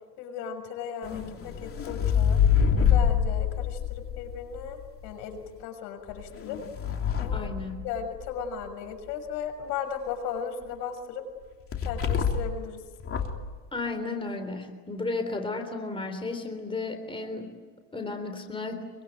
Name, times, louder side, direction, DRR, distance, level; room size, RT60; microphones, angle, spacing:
voice 1, 0.2-2.4 2.8-6.6 7.2-7.5 7.8-11.2 11.8-12.8, left 7 dB, 75° left, 7 dB, 6.5 m, -36 dB
sound 1, 1.0-5.1 6.1-8.4 11.7-12.6 13.0-13.5, left 7 dB, 25° left, 2.9 m, -26 dB
voice 2, 7.3-7.8 13.7-17.5 17.9-18.8, left 3 dB, 10° left, 6 dB, 3.7 m, -33 dB
26.0 x 24.0 x 9.4 m, 1.5 s
supercardioid pair, 135°, 49 cm